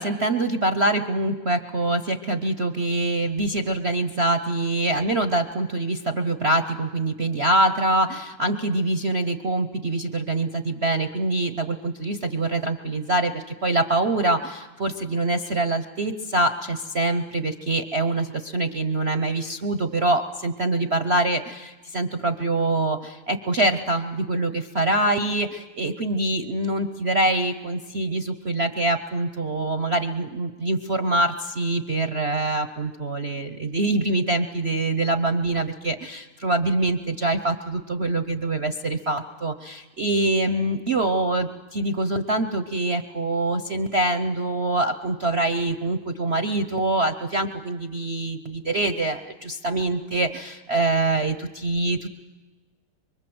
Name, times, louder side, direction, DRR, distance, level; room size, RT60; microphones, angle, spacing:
voice 1, 0.0-52.1, right 2 dB, 50° right, 9 dB, 0.7 m, -24 dB
25.0 x 24.0 x 7.9 m, 1.2 s
omnidirectional pair, 2.4 m